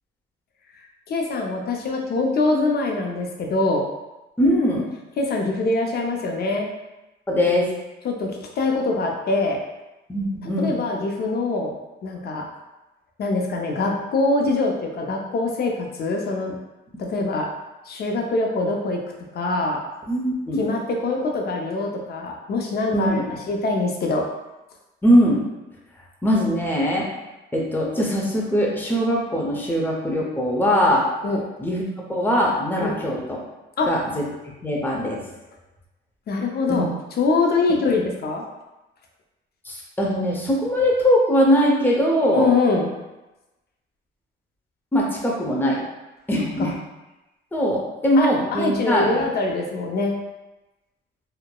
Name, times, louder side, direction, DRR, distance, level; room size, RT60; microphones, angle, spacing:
voice 1, 1.1-3.8 5.2-6.7 8.0-9.6 10.6-11.7 12.0-12.5 13.2-16.5 17.0-17.5 17.9-19.0 19.3-19.8 20.6-24.2 31.2-31.4 32.8-33.0 33.8-33.9 36.3-36.9 37.2-38.4 42.3-42.9 48.2-50.2, left 3 dB, 55° left, 1 dB, 0.5 m, -23 dB
voice 2, 4.4-4.8 7.3-7.7 10.1-10.7 20.1-20.6 22.9-23.3 25.0-25.4 26.2-27.1 27.5-31.0 31.6-31.8 32.1-33.4 33.9-34.2 34.6-35.2 36.7-36.9 39.6-42.5 44.9-45.8 46.3-46.7 47.5-49.2, equal, 10° left, -3 dB, 0.6 m, -21 dB
2.9 x 2.0 x 2.2 m, 1.0 s
cardioid pair, 90°, 20 cm